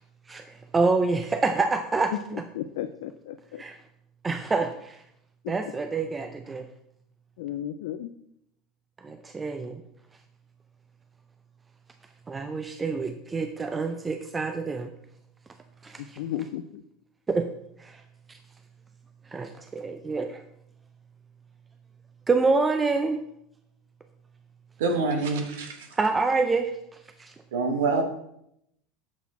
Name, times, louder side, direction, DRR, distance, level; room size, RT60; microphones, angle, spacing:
voice 1, 0.3-2.4 3.6-3.8 4.2-5.0 5.5-6.7 9.0-9.8 12.3-14.9 15.8-16.2 17.3-17.5 17.8-18.0 18.3-18.4 19.3-20.4 22.3-23.2 25.9-26.7 27.2-27.3, right 3 dB, 20° right, 0.4 m, -27 dB
voice 2, 2.5-3.6 5.4-5.5 7.4-8.1 16.2-16.8, left 11 dB, 80° left, 0.3 m, -34 dB
voice 3, 24.8-25.9 27.5-28.0, right 3 dB, 80° right, 1.0 m, -26 dB
7.3 x 4.1 x 4.2 m
supercardioid pair, 110°, 0 cm